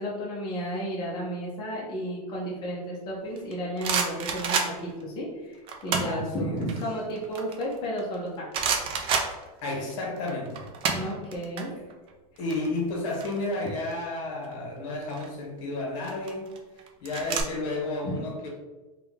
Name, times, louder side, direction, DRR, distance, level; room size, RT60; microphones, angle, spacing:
voice 1, 0.0-8.9 10.9-11.7 18.0-18.1, equal, 25° left, -5 dB, 0.7 m, -33 dB
sound 1, 3.4-5.0 5.7-6.2 6.6-8.1 8.5-9.9 10.2-11.6 11.9-12.1 12.4-13.9 14.9-15.3 16.0-17.4, right 5 dB, 25° right, 0.4 m, -29 dB
voice 2, 6.0-6.7 9.6-10.7 11.6-11.8 12.4-16.5 17.0-18.5, left 2 dB, 55° left, 0 dB, 1.1 m, -32 dB
3.6 x 2.3 x 3.5 m, 1.2 s
supercardioid pair, 150°, 20 cm